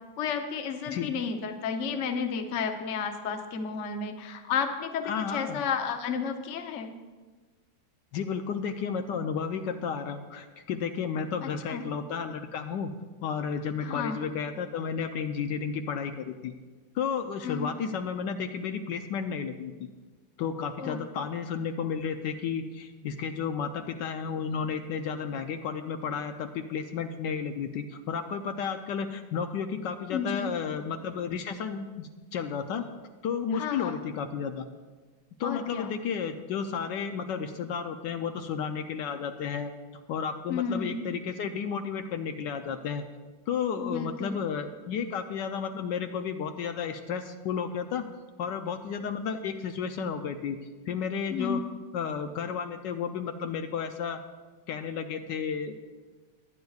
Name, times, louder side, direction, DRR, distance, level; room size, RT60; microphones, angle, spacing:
voice 1, 0.2-6.9 11.4-11.8 13.8-14.2 17.4-17.7 20.8-21.0 30.1-30.5 33.5-33.9 35.4-35.9 40.5-41.0 43.8-44.4 51.3-51.6, left 6 dB, 50° left, 5 dB, 0.9 m, -32 dB
voice 2, 5.0-5.6 8.1-12.9 13.2-16.5 16.9-19.9 20.4-32.8 33.2-34.7 35.4-39.7 40.1-43.0 43.5-48.0 48.4-50.6 50.9-51.6 51.9-54.2 54.7-55.7, left 6 dB, 75° left, 7 dB, 1.2 m, -32 dB
22.0 x 9.3 x 2.4 m, 1.4 s
omnidirectional pair, 2.1 m